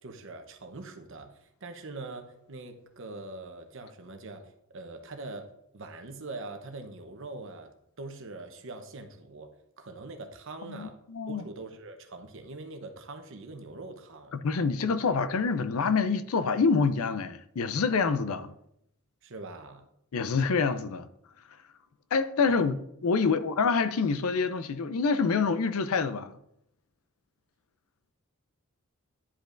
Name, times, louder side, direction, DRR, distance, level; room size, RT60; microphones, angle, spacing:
voice 1, 0.0-5.5 5.7-7.7 8.0-9.5 9.8-10.9 11.3-14.3 19.2-19.9 22.4-22.7 23.2-23.4, right 2 dB, 60° right, 0.9 m, -43 dB
voice 2, 10.7-11.4 14.3-18.5 20.1-21.1 22.1-22.7 23.0-26.4, left 5 dB, 75° left, 0.5 m, -26 dB
10.0 x 5.2 x 2.5 m
head